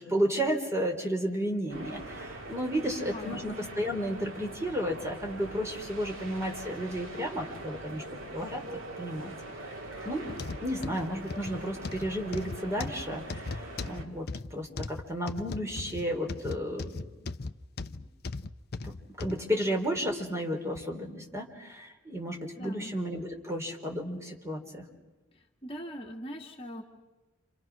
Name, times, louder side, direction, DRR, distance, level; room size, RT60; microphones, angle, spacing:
voice 1, 0.0-8.0 8.3-8.6 9.0-9.3 10.0-10.3 10.6-14.2 14.5-16.9 17.2-17.3 17.9-18.0 18.8-24.8, equal, 15° right, 2 dB, 3.9 m, -33 dB
sound 1, 1.7-14.0, right 1 dB, 90° right, 3.5 m, -43 dB
voice 2, 2.9-3.4 22.6-22.9 25.6-26.8, equal, 30° left, 1 dB, 1.9 m, -41 dB
sound 2, 10.3-19.4 20.0-20.1 20.8-20.9, left 3 dB, 55° left, 0.8 m, -38 dB
29.5 x 27.0 x 6.2 m, 1.1 s
head